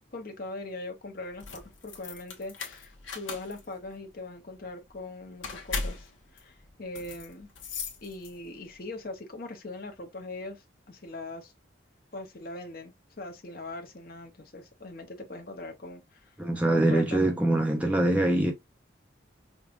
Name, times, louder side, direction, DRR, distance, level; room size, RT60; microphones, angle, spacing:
voice 1, 0.1-7.5 8.0-11.5 12.1-16.3 16.7-17.2, left 2 dB, 50° left, 0.8 m, -41 dB
sound 1, 1.3-8.6, left 4 dB, 80° left, 1.1 m, -39 dB
voice 2, 16.4-18.5, right 1 dB, 5° right, 0.6 m, -24 dB
5.2 x 2.4 x 2.4 m
head